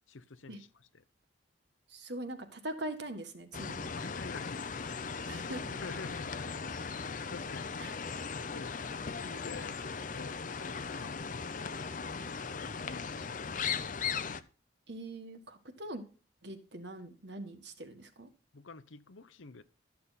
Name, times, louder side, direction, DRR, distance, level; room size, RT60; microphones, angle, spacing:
voice 1, 0.1-0.7 4.0-4.9 5.8-7.7 8.5-8.8 9.2-11.3 12.5-14.3 18.5-19.6, left 4 dB, 80° left, 0.8 m, -49 dB
voice 2, 1.9-3.9 5.3-6.0 7.8-8.0 9.1-9.3 14.9-16.0 16.4-18.3, right 1 dB, 60° right, 1.6 m, -42 dB
sound 1, 3.5-14.4, left 5 dB, 40° left, 0.6 m, -38 dB
13.0 x 7.1 x 4.1 m
head